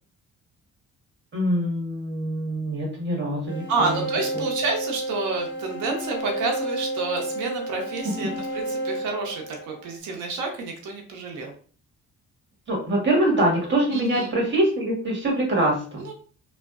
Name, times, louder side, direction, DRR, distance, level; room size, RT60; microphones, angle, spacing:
voice 1, 1.3-3.9 4.3-4.4 8.0-8.1 12.7-16.0, right 1 dB, 40° right, -2 dB, 1.4 m, -24 dB
sound 1, 3.5-10.0, right 1 dB, 10° right, 1.0 m, -31 dB
voice 2, 3.7-11.5 13.9-14.3 16.0-16.1, right 3 dB, 85° right, 2 dB, 0.7 m, -29 dB
2.6 x 2.1 x 2.3 m, 0.42 s
cardioid pair, 90°, 30 cm